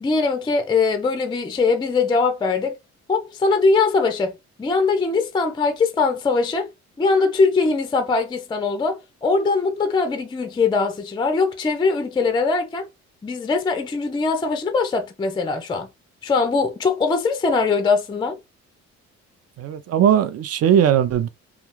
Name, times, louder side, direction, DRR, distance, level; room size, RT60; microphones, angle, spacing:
voice 1, 0.0-2.8 3.1-6.7 7.0-12.9 13.2-15.9 16.2-18.4, left 4 dB, 15° left, 0.4 m, -21 dB
voice 2, 19.6-21.3, right 9 dB, 55° right, 0.5 m, -18 dB
2.4 x 2.3 x 3.0 m
cardioid pair, 90°, 30 cm